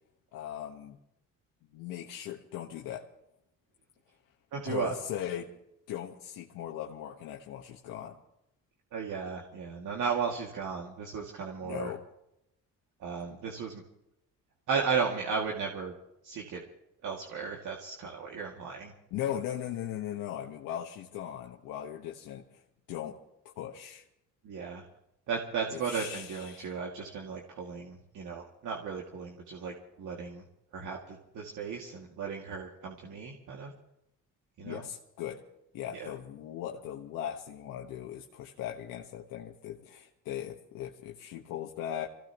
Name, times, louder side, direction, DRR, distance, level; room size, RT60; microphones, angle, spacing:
voice 1, 0.3-1.0 1.7-3.0 4.6-5.5 5.9-8.2 11.6-12.0 19.1-22.6 22.9-23.2 23.6-24.0 25.7-26.7 34.6-35.4 35.7-42.1, left 10 dB, 85° left, 0 dB, 1.4 m, -38 dB
voice 2, 4.5-4.9 8.9-11.9 13.0-13.8 14.7-15.9 16.2-16.6 17.0-18.9 24.4-24.8 25.3-30.4 30.7-33.7 34.6-34.8 35.9-36.1, right 5 dB, 65° right, -1 dB, 2.4 m, -35 dB
25.5 x 17.0 x 3.0 m, 0.84 s
cardioid pair, 85°, 32 cm